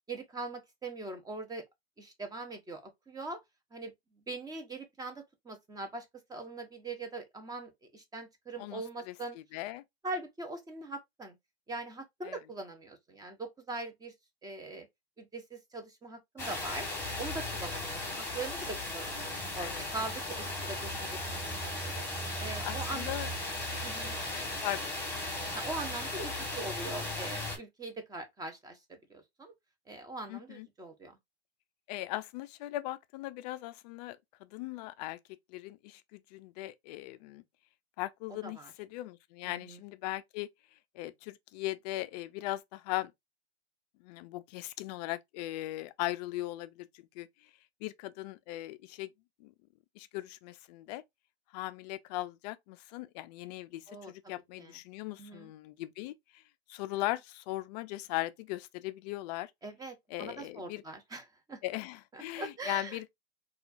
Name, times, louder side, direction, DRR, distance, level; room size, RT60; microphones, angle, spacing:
voice 1, 0.1-1.6 2.0-3.4 3.7-3.9 4.3-6.0 6.3-9.4 10.0-11.3 11.7-14.1 14.4-14.9 15.2-16.9 17.2-21.2 21.5-22.0 22.4-23.1 23.8-24.2 25.5-29.5 29.9-31.1 38.4-38.7 39.4-39.8 53.9-54.1 54.6-54.8 55.2-55.5 59.6-61.6 62.1-63.0, right 2 dB, 10° right, 0.7 m, -42 dB
voice 2, 8.6-9.8 12.2-12.4 19.6-19.9 22.6-23.3 24.3-25.0 30.3-30.7 31.9-35.2 35.5-37.4 38.0-40.5 40.9-43.1 44.0-47.3 47.8-49.1 49.4-49.5 50.0-51.0 51.5-56.4 56.7-59.5 60.1-60.8 61.6-63.1, left 17 dB, 40° left, 0.4 m, -39 dB
sound 1, 16.4-27.6, left 1 dB, 5° left, 1.4 m, -36 dB
4.2 x 2.4 x 2.5 m
hypercardioid pair, 115°, 32 cm